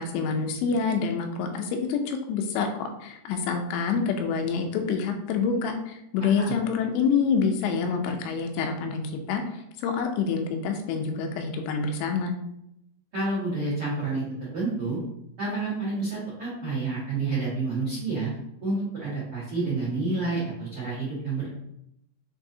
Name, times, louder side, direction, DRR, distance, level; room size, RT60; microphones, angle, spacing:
voice 1, 0.0-12.3, left 5 dB, 85° left, 4 dB, 2.8 m, -27 dB
voice 2, 6.2-6.5 13.1-15.0 15.4-18.3 18.6-21.5, right 3 dB, 90° right, -9 dB, 1.2 m, -29 dB
6.7 x 2.7 x 2.6 m, 0.80 s
omnidirectional pair, 5.2 m